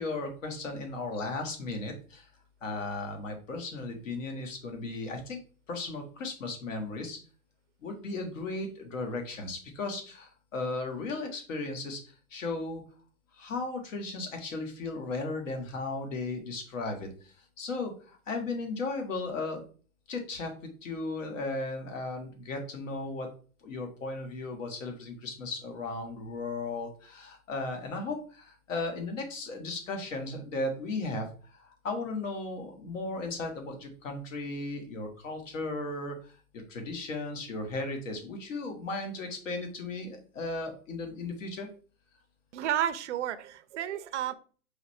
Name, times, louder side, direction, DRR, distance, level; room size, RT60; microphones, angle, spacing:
voice 1, 0.0-2.3 2.6-5.4 5.7-7.2 7.8-12.8 13.4-19.6 20.1-20.5 20.8-23.3 23.6-41.7, left 3 dB, 60° left, 1.6 m, -36 dB
voice 2, 42.5-44.3, right 11 dB, 55° right, 0.5 m, -31 dB
4.7 x 3.3 x 3.2 m
hypercardioid pair, 145°, 44 cm